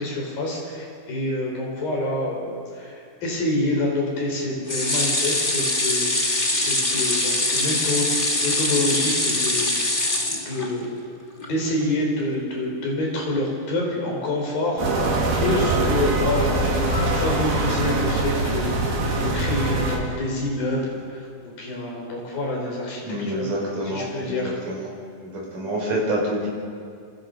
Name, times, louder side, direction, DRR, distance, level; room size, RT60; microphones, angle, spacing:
voice 1, 0.0-8.1 8.4-9.7 10.3-10.9 11.4-14.8 15.3-23.0 23.3-23.4 23.9-24.5, left 1 dB, 75° left, -1 dB, 7.2 m, -27 dB
sound 1, 4.7-11.0 11.4-11.5 11.8-11.9, left 2 dB, 15° left, 1.9 m, -23 dB
sound 2, 14.8-20.0, right 2 dB, 85° right, 5.5 m, -23 dB
voice 2, 23.0-24.9 25.3-26.5, right 1 dB, 60° right, -2 dB, 6.7 m, -27 dB
28.0 x 27.5 x 5.7 m, 2.3 s
omnidirectional pair, 4.2 m